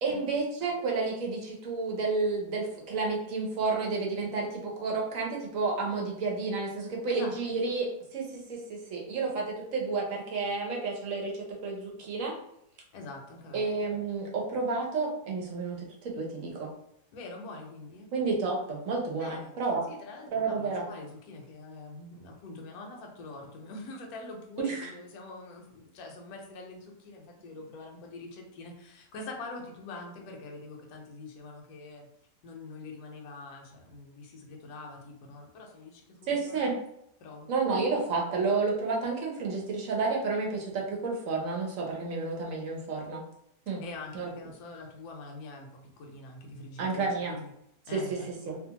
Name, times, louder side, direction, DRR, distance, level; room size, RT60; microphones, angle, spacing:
voice 1, 0.0-12.4 13.5-16.7 18.1-19.8 20.3-20.9 24.6-24.9 36.3-36.8 37.5-43.2 43.7-43.8 44.1-44.3 46.8-47.4 47.9-48.2 48.5-48.6, right 4 dB, 65° right, -1 dB, 0.9 m, -31 dB
voice 2, 12.9-13.7 17.1-18.1 19.2-19.5 19.9-32.1 32.4-36.7 37.2-37.5 43.8-47.5 47.9-48.6, left 3 dB, 70° left, 1 dB, 1.1 m, -44 dB
2.7 x 2.4 x 2.8 m, 0.77 s
omnidirectional pair, 1.8 m